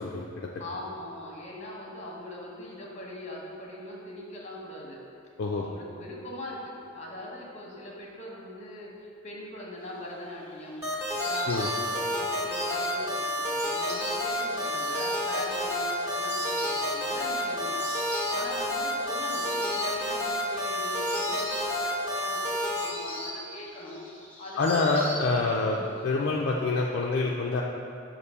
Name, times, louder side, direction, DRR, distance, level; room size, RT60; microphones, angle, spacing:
voice 1, 0.0-0.5 5.4-5.6 11.5-11.7 24.6-25.8 26.0-27.6, left 3 dB, 50° left, -2 dB, 0.4 m, -26 dB
voice 2, 0.6-5.0 5.6-10.8 11.2-17.8 18.3-24.0 24.4-25.2 25.5-25.9, left 1 dB, 35° left, -3 dB, 1.0 m, -41 dB
Insect, 10.0-25.7 26.0-26.8, left 1 dB, 10° left, 0.8 m, -41 dB
sound 1, 10.8-22.9, left 1 dB, 15° right, 1.2 m, -30 dB
6.6 x 2.6 x 5.4 m, 2.5 s
head